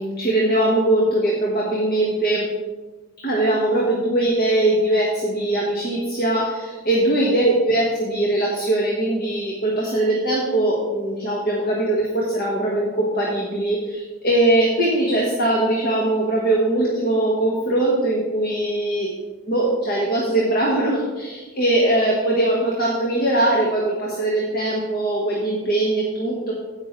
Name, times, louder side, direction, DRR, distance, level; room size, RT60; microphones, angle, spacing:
voice 1, 0.0-2.5 3.2-19.1 19.5-26.5, right 1 dB, 45° left, -3 dB, 1.6 m, -21 dB
16.5 x 6.0 x 3.3 m, 1.3 s
head